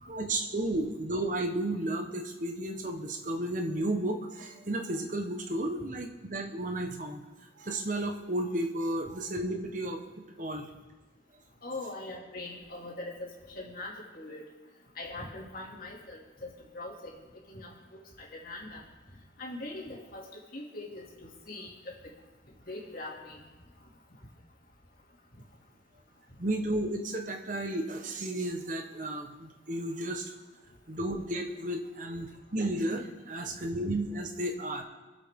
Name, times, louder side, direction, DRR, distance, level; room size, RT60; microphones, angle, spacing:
voice 1, 0.0-7.2 7.6-10.0 10.4-10.7 26.4-30.3 30.9-34.8, right 1 dB, 45° right, 4 dB, 1.2 m, -33 dB
voice 2, 11.6-14.4 14.9-17.1 17.5-18.8 19.4-20.3 20.5-22.1 22.7-23.4, left 2 dB, 55° left, -3 dB, 2.7 m, -42 dB
23.5 x 8.0 x 3.8 m, 1.2 s
head